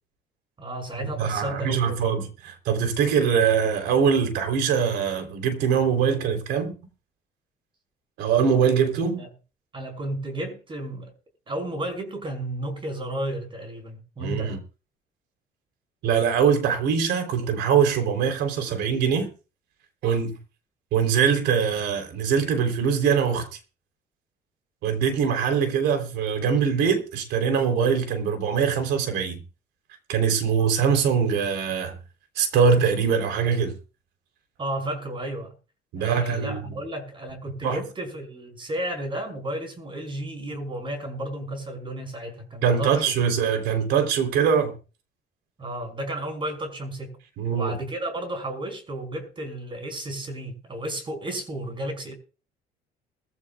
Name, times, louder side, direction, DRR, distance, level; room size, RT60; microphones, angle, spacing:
voice 1, 0.6-2.0 9.2-9.3 9.7-11.1 11.5-14.6 34.6-35.5 36.0-43.0 45.6-47.2 47.5-52.1, right 1 dB, 30° right, 5.8 m, -33 dB
voice 2, 1.2-6.7 8.2-9.2 14.2-14.6 16.0-19.3 20.0-20.3 20.9-23.5 24.8-29.4 30.1-32.0 32.3-33.7 35.9-36.7 37.6-37.8 42.6-44.7 47.4-47.7, right 7 dB, 85° right, 3.5 m, -23 dB
21.5 x 15.5 x 2.4 m
cardioid pair, 110°, 17 cm